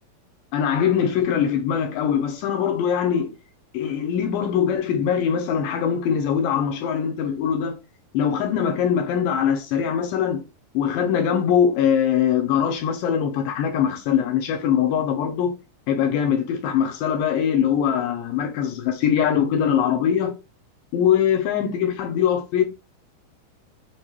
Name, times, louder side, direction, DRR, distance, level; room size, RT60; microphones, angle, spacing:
voice 1, 0.5-3.3 3.7-7.8 8.1-10.4 10.7-15.6 15.9-20.4 20.9-22.6, left 8 dB, 80° left, 2.1 m, -22 dB
6.2 x 2.5 x 2.9 m
omnidirectional pair, 4.3 m